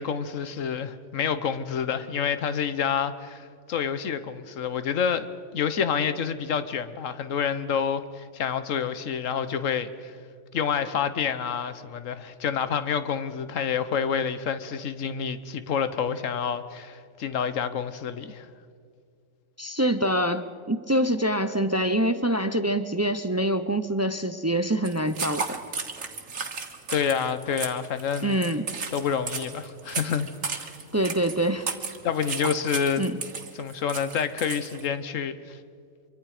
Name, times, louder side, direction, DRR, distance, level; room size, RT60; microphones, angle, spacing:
voice 1, 0.0-5.3 5.5-10.2 10.5-18.5 26.9-28.4 28.9-30.7 32.0-33.1 33.5-35.6, left 7 dB, 75° left, 1.4 m, -28 dB
voice 2, 19.6-25.6 28.2-28.7 30.9-31.7 33.0-33.2, right 1 dB, 20° right, 0.5 m, -25 dB
sound 1, 24.8-34.9, right 5 dB, 75° right, 1.9 m, -35 dB
25.5 x 24.0 x 5.0 m
omnidirectional pair, 1.3 m